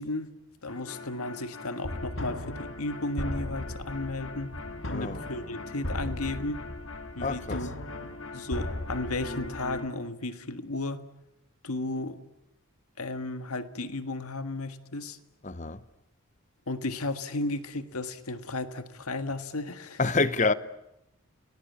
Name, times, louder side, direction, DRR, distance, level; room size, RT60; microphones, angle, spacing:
voice 1, 0.0-4.5 4.9-6.7 7.2-7.7 8.0-11.0 11.6-12.2 13.0-15.2 16.7-20.0, left 2 dB, 85° left, 1.7 m, -34 dB
sound 1, 0.7-9.9, left 1 dB, 55° left, 2.0 m, -37 dB
voice 2, 4.9-5.2 7.2-7.7 15.4-15.8 20.0-20.5, left 3 dB, 35° left, 0.9 m, -27 dB
29.5 x 20.0 x 8.6 m
head